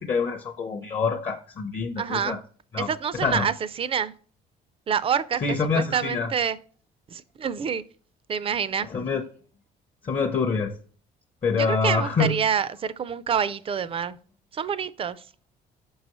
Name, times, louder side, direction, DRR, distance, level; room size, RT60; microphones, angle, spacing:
voice 1, 0.0-2.4 2.7-2.9 3.2-3.5 5.4-6.3 8.9-9.2 10.0-10.8 11.4-12.3, left 4 dB, 35° left, 0.6 m, -25 dB
voice 2, 2.0-2.4 2.8-4.1 4.9-6.6 7.1-7.8 8.3-8.9 11.6-14.2 14.5-15.2, right 7 dB, 35° right, 0.4 m, -27 dB
5.8 x 5.5 x 3.0 m
cardioid pair, 110°, 17 cm